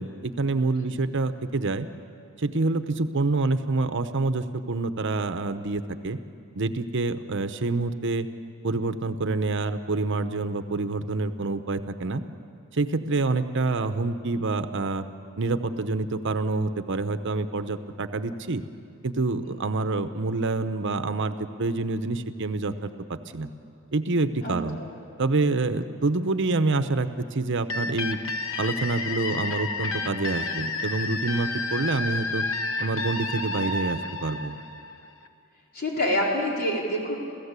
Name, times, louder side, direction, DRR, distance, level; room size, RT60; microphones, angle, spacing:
voice 1, 0.0-1.9 2.4-6.2 6.5-8.3 8.6-12.2 12.7-15.1 15.4-18.6 19.0-23.5 23.9-24.8 25.2-28.2 28.6-32.4 32.8-34.6, right 3 dB, 60° right, 10 dB, 0.9 m, -27 dB
voice 2, 24.4-24.9 35.7-37.2, equal, 50° left, -2 dB, 4.5 m, -27 dB
sound 1, 27.7-35.3, left 3 dB, 70° left, 1.2 m, -31 dB
28.0 x 15.5 x 8.2 m, 2.5 s
head